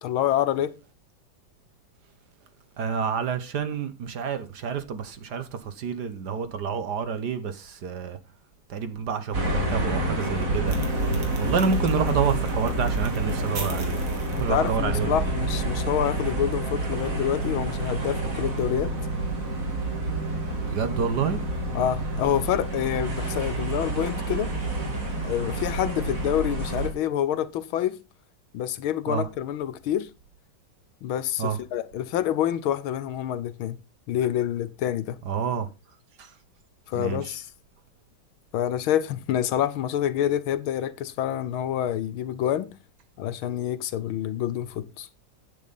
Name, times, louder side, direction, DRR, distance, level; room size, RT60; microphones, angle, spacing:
voice 1, 0.0-0.7 14.3-18.9 21.7-24.5 24.8-28.0 28.5-30.1 31.0-33.8 34.1-35.2 36.9-37.5 38.5-42.7 43.2-45.1, left 10 dB, 90° left, 1.7 m, -27 dB
voice 2, 2.8-8.2 8.7-10.8 11.4-14.0 14.4-15.3 20.7-21.4 29.1-29.3 31.4-31.6 35.2-35.7 36.2-36.3 36.9-37.3, right 6 dB, 60° right, 1.5 m, -28 dB
sound 1, 9.3-26.9, right 2 dB, 40° right, 2.7 m, -28 dB
sound 2, 10.7-15.8, right 4 dB, 80° right, 2.9 m, -44 dB
10.5 x 8.7 x 4.0 m
omnidirectional pair, 2.2 m